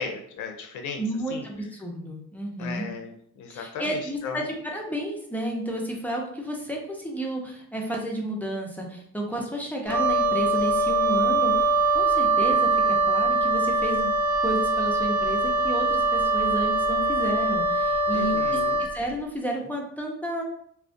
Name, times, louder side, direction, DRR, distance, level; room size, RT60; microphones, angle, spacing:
voice 1, 0.0-1.0 1.3-1.5 2.6-4.4 18.1-18.8, left 5 dB, 80° left, 4 dB, 0.5 m, -36 dB
voice 2, 1.0-2.9 3.5-11.7 11.9-14.1 14.4-20.4, right 1 dB, 5° left, -2 dB, 0.5 m, -31 dB
Wind instrument woodwind instrument, 9.9-19.0, right 2 dB, 85° right, 0.5 m, -23 dB
2.4 x 2.1 x 2.5 m, 0.67 s
cardioid pair, 90°, 30 cm